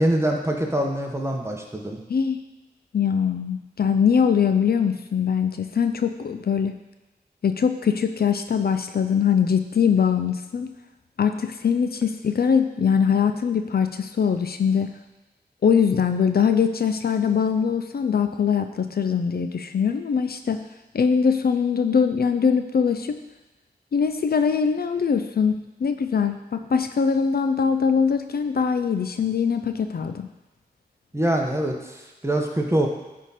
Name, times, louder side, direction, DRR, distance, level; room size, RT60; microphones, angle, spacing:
voice 1, 0.0-2.0 31.1-32.9, right 1 dB, 15° right, 1 dB, 1.1 m, -24 dB
voice 2, 2.9-6.7 7.4-10.7 11.2-14.9 15.6-20.6 20.9-23.2 23.9-30.3, left 6 dB, 65° left, 8 dB, 0.4 m, -22 dB
9.8 x 3.7 x 4.2 m, 1.1 s
cardioid pair, 50°, 17 cm